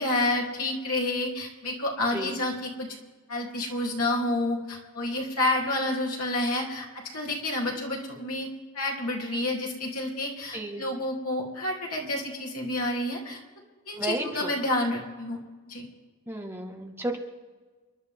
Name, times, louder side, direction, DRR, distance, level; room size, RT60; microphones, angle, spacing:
voice 1, 0.0-2.9 3.3-8.5 8.7-13.4 13.9-15.4 15.7-15.9, left 2 dB, 85° left, -1 dB, 3.4 m, -29 dB
voice 2, 10.5-10.8 14.0-14.5 16.3-17.2, right 2 dB, 10° right, 2 dB, 1.7 m, -33 dB
29.5 x 12.0 x 3.7 m, 1.4 s
head